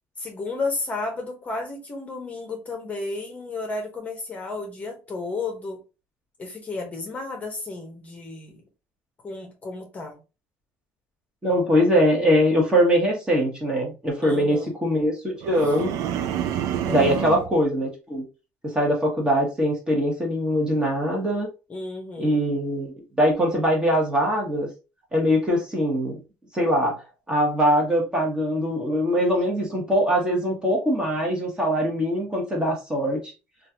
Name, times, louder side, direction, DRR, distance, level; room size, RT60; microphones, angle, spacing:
voice 1, 0.2-5.8 6.4-8.6 9.2-10.2 14.2-14.7 16.8-17.4 21.7-22.4, left 3 dB, 25° left, 0.8 m, -32 dB
voice 2, 11.4-15.9 16.9-18.2 18.6-21.5 22.2-24.7 25.1-26.2 26.5-33.3, equal, 15° right, 1.1 m, -22 dB
sound 1, 15.4-17.5, right 10 dB, 70° right, 0.4 m, -28 dB
3.0 x 2.4 x 2.7 m
cardioid pair, 140°, 6 cm